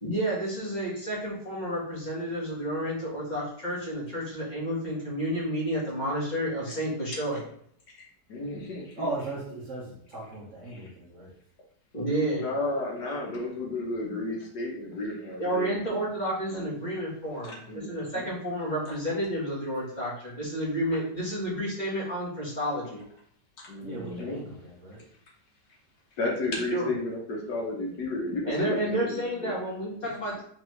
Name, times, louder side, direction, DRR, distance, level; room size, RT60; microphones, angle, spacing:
voice 1, 0.0-7.4 11.9-12.5 15.4-23.0 26.7-26.9 28.4-30.4, right 1 dB, 25° left, -6 dB, 1.5 m, -30 dB
voice 2, 8.3-9.1 10.7-10.9 12.4-15.8 16.5-16.7 17.4-18.3 23.6-24.4 26.2-29.5, left 2 dB, 65° left, -2 dB, 1.5 m, -33 dB
voice 3, 9.0-11.3 23.8-25.0, right 2 dB, 50° right, -4 dB, 1.1 m, -37 dB
3.9 x 3.3 x 3.1 m, 0.64 s
omnidirectional pair, 1.9 m